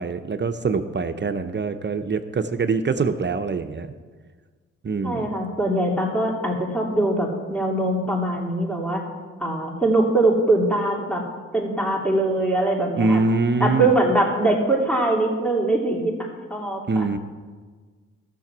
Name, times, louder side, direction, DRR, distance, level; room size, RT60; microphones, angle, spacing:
voice 1, 0.0-3.9 4.8-5.4 13.0-13.9 16.9-17.2, right 4 dB, 40° right, 9 dB, 0.7 m, -24 dB
voice 2, 5.0-9.0 9.4-11.2 11.5-13.2 13.6-17.1, right 2 dB, 5° left, -1 dB, 2.9 m, -22 dB
15.0 x 6.8 x 6.1 m, 1.5 s
cardioid pair, 80°, 29 cm